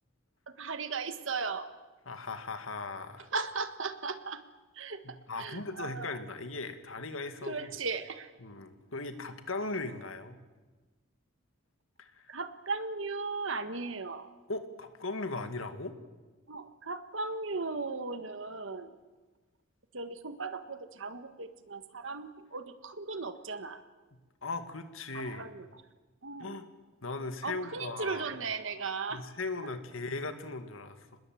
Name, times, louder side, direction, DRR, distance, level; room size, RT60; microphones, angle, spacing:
voice 1, 0.6-1.7 3.3-4.4 4.7-6.1 7.4-8.3 12.3-14.3 16.5-18.9 19.9-23.8 25.1-25.7 26.2-26.6 27.4-29.2, right 4 dB, 70° right, 10 dB, 1.6 m, -37 dB
voice 2, 2.1-3.3 5.0-7.7 8.4-10.4 12.0-12.2 14.5-16.0 24.4-25.5 26.4-26.7 27.0-28.2 29.1-31.1, left 3 dB, 80° left, 8 dB, 2.1 m, -38 dB
26.0 x 20.5 x 7.9 m, 1.3 s
head